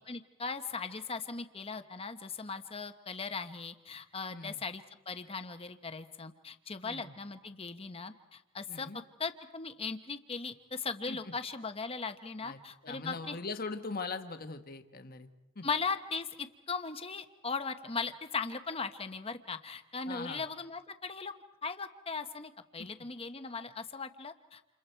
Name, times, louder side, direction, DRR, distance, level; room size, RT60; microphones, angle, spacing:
voice 1, 0.1-8.9 9.2-13.4 15.6-21.3 21.6-24.7, left 4 dB, 25° left, 8 dB, 1.2 m, -38 dB
voice 2, 4.3-4.6 6.8-7.1 8.7-9.0 11.1-11.2 12.4-15.3 15.5-15.7 20.1-20.4 22.8-22.9, left 4 dB, 45° left, 7 dB, 1.4 m, -41 dB
29.5 x 28.5 x 4.6 m, 0.96 s
head